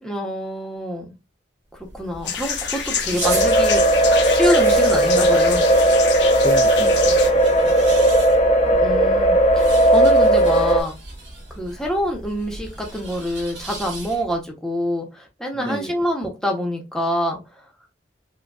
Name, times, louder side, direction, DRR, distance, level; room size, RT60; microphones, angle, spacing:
voice 1, 0.0-1.1 1.9-5.7 8.8-10.9 11.5-17.7, equal, 5° left, 0.8 m, -26 dB
sound 1, 1.7-14.4, right 2 dB, 70° right, 1.7 m, -37 dB
sound 2, 2.2-7.3, left 7 dB, 70° left, 0.7 m, -28 dB
sound 3, 3.2-10.8, right 1 dB, 35° left, 0.6 m, -16 dB
voice 2, 6.4-8.0 15.5-15.9, equal, 25° right, 0.4 m, -32 dB
4.7 x 2.2 x 2.3 m
head